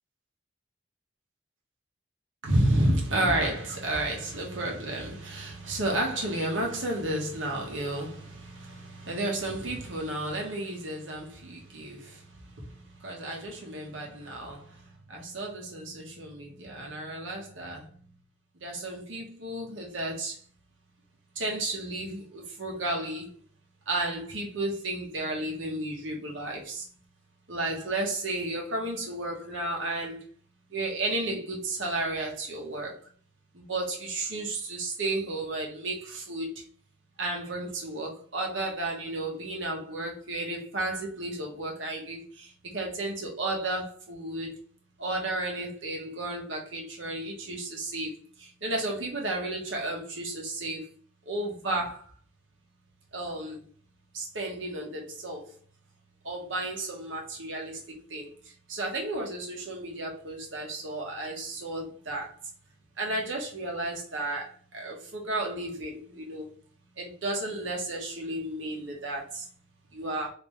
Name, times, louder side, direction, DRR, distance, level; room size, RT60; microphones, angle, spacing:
voice 1, 2.4-12.1 13.0-14.6 15.1-17.8 18.6-20.3 21.4-23.3 23.9-26.8 27.5-30.2 30.7-32.9 33.5-36.5 37.2-42.5 42.7-44.5 45.0-48.1 48.6-50.8 51.3-52.0 53.1-53.6 54.1-55.5 56.2-57.8 58.1-58.3 58.7-62.3 63.0-66.5 67.0-69.4 69.9-70.3, right 1 dB, 80° right, 1.2 m, -32 dB
3.4 x 2.9 x 3.1 m
head